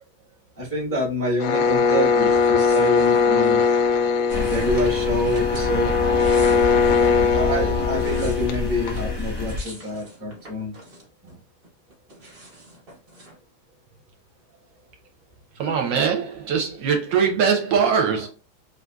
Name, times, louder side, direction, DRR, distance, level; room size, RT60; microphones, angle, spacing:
voice 1, 0.6-3.6 4.3-5.9 7.3-10.7 11.2-11.4, equal, 10° right, 0.7 m, -27 dB
sound 1, 1.4-9.2, left 5 dB, 80° left, 1.4 m, -20 dB
sound 2, 2.6-3.7 4.3-5.7 6.0-7.2 7.7-11.3 11.6-13.4, right 1 dB, 35° right, 1.0 m, -45 dB
sound 3, 4.3-9.6, left 3 dB, 25° left, 0.7 m, -28 dB
voice 2, 15.6-18.3, right 6 dB, 75° right, 1.2 m, -21 dB
3.4 x 2.6 x 2.2 m
omnidirectional pair, 2.2 m